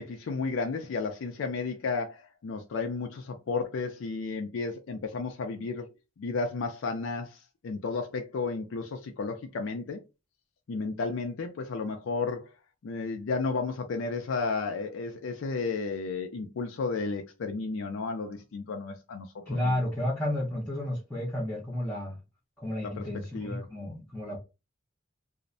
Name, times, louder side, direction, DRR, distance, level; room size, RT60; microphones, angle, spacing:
voice 1, 0.0-5.9 6.2-10.0 10.7-12.5 12.8-19.8 22.8-23.0 23.3-23.7, left 4 dB, 65° left, 0.4 m, -33 dB
voice 2, 19.5-22.2 22.6-24.4, left 1 dB, 10° left, 0.5 m, -32 dB
2.5 x 2.0 x 2.5 m
head